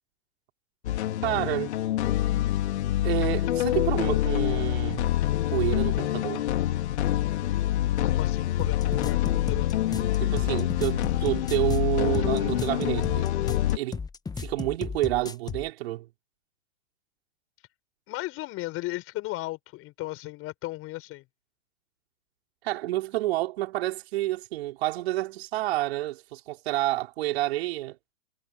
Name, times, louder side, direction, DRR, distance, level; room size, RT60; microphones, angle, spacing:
sound 1, 0.8-13.8, left 13 dB, 65° left, 3.4 m, -26 dB
voice 1, 1.2-1.7 3.0-5.1 5.5-6.4 10.2-13.3 13.7-14.0 14.4-16.1 22.6-28.0, right 16 dB, 55° right, 5.5 m, -29 dB
voice 2, 8.0-9.7 18.1-21.3, left 19 dB, 35° left, 6.7 m, -36 dB
sound 2, 8.6-15.7, left 5 dB, 10° left, 1.6 m, -35 dB
hypercardioid pair, 115°, 37 cm